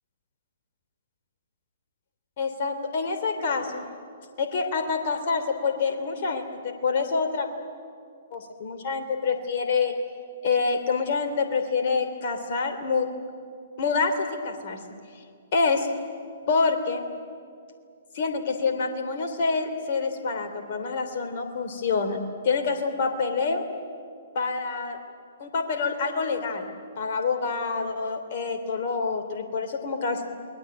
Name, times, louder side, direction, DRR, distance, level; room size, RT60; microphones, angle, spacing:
voice 1, 2.4-3.9 4.4-7.5 8.3-9.9 10.4-13.1 13.8-14.8 15.5-15.9 16.5-17.0 18.1-22.2 22.4-23.6 24.3-25.0 25.4-26.7 27.0-30.3, left 4 dB, 45° left, 6 dB, 3.3 m, -27 dB
28.5 x 21.5 x 9.1 m, 2.3 s
figure-of-eight pair, 120°, 0 cm